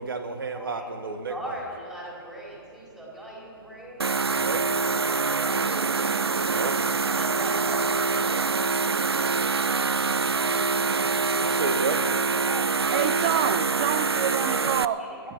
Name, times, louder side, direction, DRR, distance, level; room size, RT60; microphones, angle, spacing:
voice 1, 0.0-1.3 4.3-4.6 6.4-6.7 11.4-12.0, right 4 dB, 60° right, 7 dB, 1.6 m, -31 dB
voice 2, 0.5-4.2 7.1-8.7 12.5-13.1 15.0-15.3, equal, 5° right, -4 dB, 3.7 m, -42 dB
sound 1, 4.0-14.8, right 4 dB, 80° right, 0.4 m, -25 dB
voice 3, 12.9-15.0, right 9 dB, 30° right, 9 dB, 0.6 m, -27 dB
27.5 x 9.7 x 4.3 m, 2.3 s
figure-of-eight pair, 125°, 13 cm